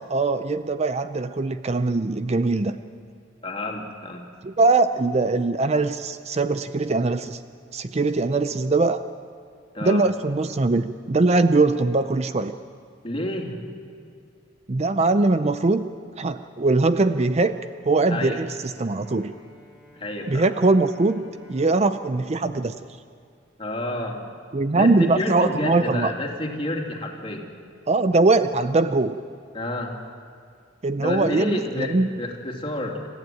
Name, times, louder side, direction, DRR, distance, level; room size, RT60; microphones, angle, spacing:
voice 1, 0.1-2.8 4.4-7.4 7.7-9.0 9.8-12.5 14.7-15.9 16.2-17.6 17.9-19.3 20.3-21.2 21.5-22.8 24.5-26.1 27.9-29.2 30.8-32.2, right 3 dB, 35° right, 11 dB, 0.5 m, -21 dB
voice 2, 3.4-4.2 9.7-10.0 13.0-13.6 18.1-18.4 19.9-20.5 23.6-24.2 24.7-27.4 29.5-29.9 31.0-33.1, left 1 dB, 30° left, 0 dB, 2.8 m, -29 dB
Bowed string instrument, 18.1-23.6, equal, 5° right, 4.6 m, -53 dB
26.5 x 15.0 x 9.2 m, 2.3 s
head